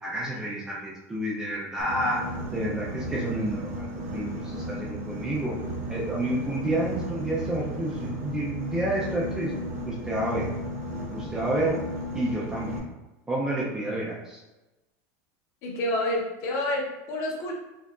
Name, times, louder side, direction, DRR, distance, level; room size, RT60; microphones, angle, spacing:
voice 1, 0.0-2.2 2.5-5.6 5.9-9.5 9.9-10.5 11.1-11.8 12.1-12.8 13.3-14.4, right 1 dB, 5° right, -5 dB, 0.3 m, -29 dB
Boat Water vehicle, 1.8-12.8, equal, 80° right, 0.8 m, -34 dB
voice 2, 15.6-17.5, left 1 dB, 35° left, -1 dB, 0.8 m, -28 dB
4.6 x 2.7 x 2.3 m, 1.0 s
supercardioid pair, 180°, 8 cm